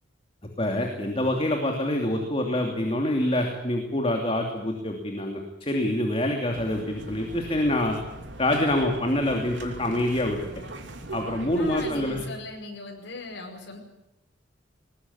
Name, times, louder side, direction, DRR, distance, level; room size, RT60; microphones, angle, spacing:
voice 1, 0.6-8.0 8.4-10.4 11.1-12.2, left 1 dB, 30° left, 3 dB, 2.9 m, -26 dB
sound 1, 6.5-12.3, right 2 dB, 85° right, 3.0 m, -40 dB
voice 2, 11.6-13.8, left 2 dB, 85° left, 1 dB, 5.2 m, -38 dB
21.0 x 20.5 x 9.8 m, 0.93 s
head